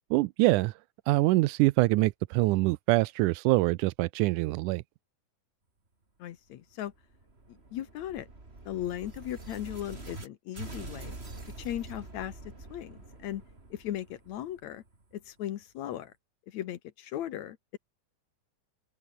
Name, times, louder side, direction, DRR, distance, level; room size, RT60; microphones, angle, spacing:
voice 1, 0.1-0.8 1.1-4.8, right 20 dB, 85° right, 2.1 m, -24 dB
voice 2, 6.2-6.9 7.7-8.3 8.7-11.1 11.6-12.4 12.7-13.4 13.7-14.8 15.1-16.1 16.5-17.8, left 12 dB, 70° left, 2.3 m, -37 dB
sound 1, 6.8-10.3 10.5-15.3, right 2 dB, 20° right, 3.5 m, -45 dB
open air
omnidirectional pair, 3.5 m